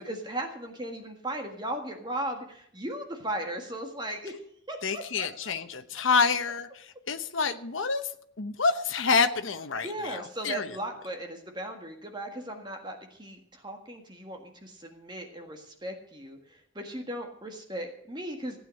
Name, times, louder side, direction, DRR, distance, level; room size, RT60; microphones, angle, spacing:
voice 1, 0.0-4.4 4.7-5.5 9.8-18.6, right 1 dB, 20° right, 4 dB, 1.6 m, -37 dB
voice 2, 4.8-8.0 8.4-10.2 10.4-10.7, left 5 dB, 70° left, 8 dB, 1.0 m, -27 dB
16.0 x 8.9 x 6.4 m, 0.66 s
head